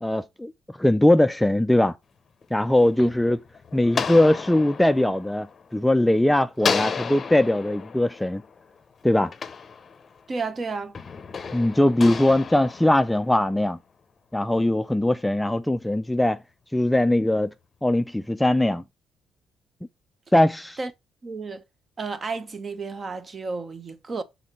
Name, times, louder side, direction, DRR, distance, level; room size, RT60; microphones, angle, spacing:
voice 1, 0.0-2.0 2.5-3.4 3.7-8.4 9.0-9.3 11.5-13.8 14.3-16.4 16.7-17.5 17.8-18.8 20.3-20.8, left 1 dB, 5° left, 0.4 m, -21 dB
sound 1, 2.4-6.1 6.6-10.3 10.9-13.6, left 5 dB, 35° left, 0.7 m, -33 dB
voice 2, 10.3-11.0 20.8-20.9 21.2-21.6 22.0-24.2, right 4 dB, 30° right, 0.8 m, -31 dB
6.3 x 3.9 x 4.2 m
cardioid pair, 115°, 0 cm